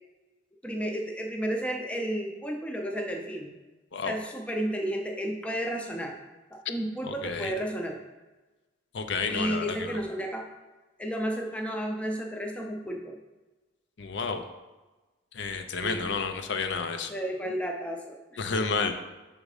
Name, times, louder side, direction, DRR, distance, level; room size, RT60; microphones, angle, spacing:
voice 1, 0.6-3.5 4.0-6.2 6.7-8.0 9.3-10.5 11.0-13.2 15.7-16.1 17.1-18.8, equal, 5° left, 1 dB, 0.5 m, -32 dB
voice 2, 7.0-7.5 8.9-10.0 14.0-14.4 15.3-17.1 18.4-19.0, left 4 dB, 65° left, 7 dB, 0.5 m, -31 dB
6.2 x 3.7 x 4.8 m, 1.1 s
head